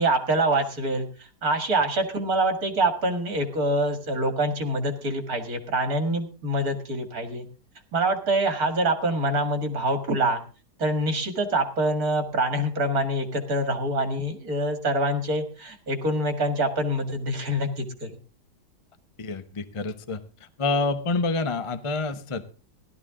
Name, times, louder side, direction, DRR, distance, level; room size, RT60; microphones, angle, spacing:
voice 1, 0.0-7.5 7.9-10.4 10.8-18.1, right 1 dB, 55° right, 7 dB, 2.3 m, -25 dB
voice 2, 19.2-20.2 20.6-22.4, left 3 dB, 30° left, 10 dB, 0.6 m, -27 dB
16.0 x 12.5 x 3.7 m, 0.35 s
omnidirectional pair, 1.9 m